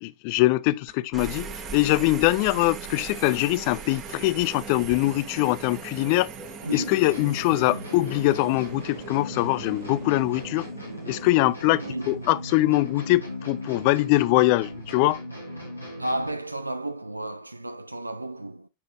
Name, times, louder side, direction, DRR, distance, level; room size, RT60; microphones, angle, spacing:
voice 1, 0.0-6.3 6.7-10.7 11.1-15.2, left 18 dB, 45° left, 0.3 m, -23 dB
sound 1, 0.9-13.5 14.7-15.2, right 4 dB, 25° right, 1.4 m, -42 dB
Subway metro underground, 1.2-10.6, right 9 dB, 45° right, 0.9 m, -44 dB
sound 2, 7.1-16.5, left 1 dB, 85° left, 1.8 m, -38 dB
voice 2, 11.7-12.1 16.0-18.7, right 1 dB, 85° right, 0.4 m, -32 dB
9.7 x 4.0 x 2.5 m
figure-of-eight pair, 90°, 0 cm